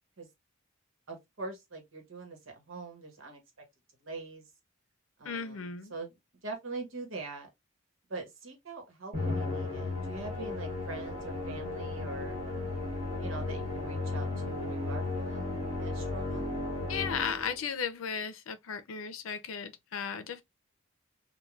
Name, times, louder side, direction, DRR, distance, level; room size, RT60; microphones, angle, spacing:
voice 1, 1.1-3.4 4.0-4.4 5.2-6.2 6.4-7.5 8.1-12.4 13.2-16.5, right 3 dB, 75° right, 1.1 m, -43 dB
voice 2, 5.3-5.9 16.9-20.4, left 6 dB, 85° left, 0.5 m, -35 dB
Musical instrument, 9.1-17.7, left 2 dB, 35° right, 1.5 m, -35 dB
3.1 x 2.3 x 2.3 m
head